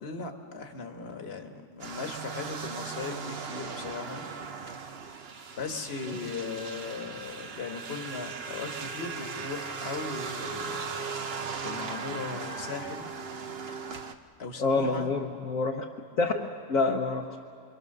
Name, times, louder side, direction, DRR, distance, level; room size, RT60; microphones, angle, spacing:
voice 1, 0.0-4.2 5.6-10.8 11.6-13.1 14.4-15.1, left 4 dB, 40° left, 4 dB, 1.7 m, -38 dB
sound 1, 1.8-14.1, right 5 dB, 45° right, 1.0 m, -38 dB
voice 2, 14.6-15.8 16.2-17.4, left 3 dB, 60° left, -1 dB, 1.5 m, -27 dB
27.5 x 23.5 x 6.7 m, 2.2 s
omnidirectional pair, 1.7 m